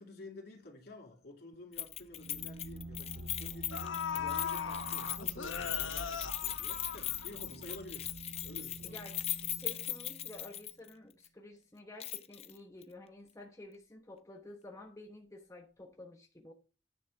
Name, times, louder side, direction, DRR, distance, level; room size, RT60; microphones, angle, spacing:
voice 1, 0.0-9.0, left 2 dB, 55° left, 2.7 m, -51 dB
sound 1, 1.5-1.6 2.0-2.2 3.2-3.3 3.7-7.6 8.0-8.1, left 7 dB, 90° left, 0.8 m, -39 dB
Keys jangling, 1.8-10.9 11.2-11.3 12.0-12.5 12.8-12.9, left 12 dB, 35° left, 0.6 m, -39 dB
sound 2, 2.1-10.6, right 2 dB, 85° right, 0.6 m, -48 dB
voice 2, 8.8-9.2 9.6-16.5, left 2 dB, 15° left, 1.0 m, -51 dB
9.6 x 6.3 x 3.3 m
head